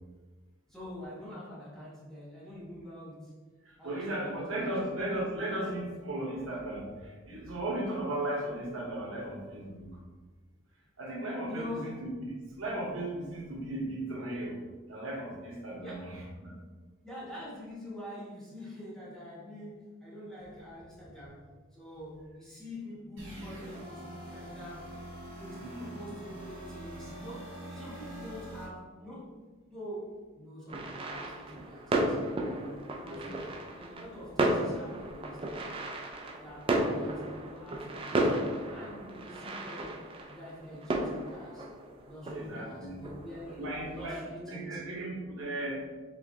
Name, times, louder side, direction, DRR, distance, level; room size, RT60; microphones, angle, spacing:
voice 1, 0.7-3.4 3.8-4.8 11.5-12.0 15.8-16.1 17.0-25.0 25.4-29.3 29.6-32.2 32.5-33.3 33.8-35.7 36.4-40.0 40.3-41.7 42.0-44.8, left 1 dB, 5° left, -8 dB, 1.2 m, -45 dB
voice 2, 3.7-9.9 11.0-12.1 12.5-14.6 14.9-16.5 25.5-26.1 33.0-33.4 42.3-43.0 43.6-45.9, right 1 dB, 90° right, -2 dB, 1.1 m, -36 dB
sound 1, 23.2-28.7, right 1 dB, 65° right, 1.5 m, -44 dB
sound 2, 30.7-44.1, right 1 dB, 25° right, 0.4 m, -34 dB
4.9 x 3.1 x 2.8 m, 1.3 s
head